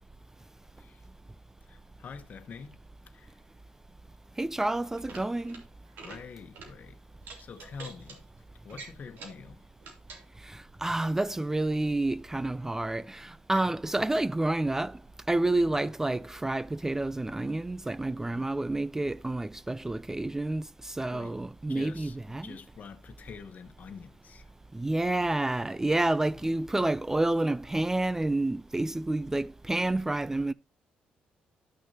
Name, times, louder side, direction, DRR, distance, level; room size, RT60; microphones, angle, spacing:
voice 1, 1.7-2.7 3.0-3.3 6.0-7.0 7.4-8.2 8.6-9.6 13.5-13.7 15.7-15.9 21.1-21.3 21.7-24.5 26.4-26.5, left 6 dB, 55° left, 1.2 m, -46 dB
voice 2, 4.4-5.6 10.8-15.0 15.3-20.7 21.0-22.5 24.7-30.5, right 2 dB, 15° right, 0.3 m, -29 dB
sound 1, 5.0-5.6 5.9-6.2 6.5-6.7 7.2-8.2 8.7-9.4 9.8-10.2, right 4 dB, 75° right, 2.8 m, -46 dB
13.0 x 6.1 x 2.8 m
cardioid pair, 75°, 3 cm